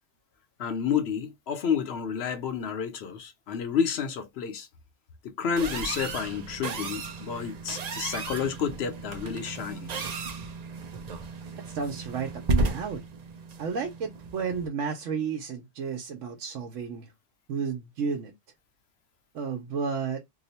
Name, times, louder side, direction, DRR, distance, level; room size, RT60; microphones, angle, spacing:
voice 1, 0.6-4.7 5.2-10.1, left 7 dB, 65° left, 0.8 m, -30 dB
sound 1, 5.6-14.7, right 3 dB, 55° right, 0.4 m, -34 dB
voice 2, 11.6-13.0 13.6-17.1 17.5-18.3 19.3-20.2, right 6 dB, 80° right, 1.0 m, -32 dB
2.9 x 2.1 x 4.0 m
omnidirectional pair, 1.3 m